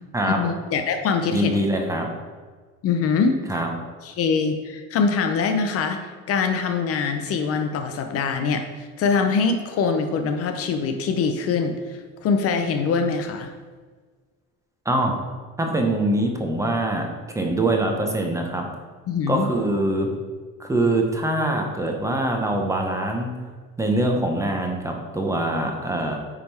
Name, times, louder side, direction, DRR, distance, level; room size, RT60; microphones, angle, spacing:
voice 1, 0.3-1.5 2.8-3.4 4.2-6.0 6.3-8.6 9.0-11.7 12.2-13.5 19.1-19.4, left 5 dB, 45° left, 6 dB, 0.6 m, -23 dB
voice 2, 1.3-2.1 3.5-3.7 14.8-15.1 15.6-17.1 17.3-18.7 19.3-20.1 20.6-23.3 23.8-26.2, right 1 dB, 10° right, 2 dB, 0.7 m, -23 dB
9.6 x 3.6 x 4.5 m, 1.5 s
cardioid pair, 160°, 34 cm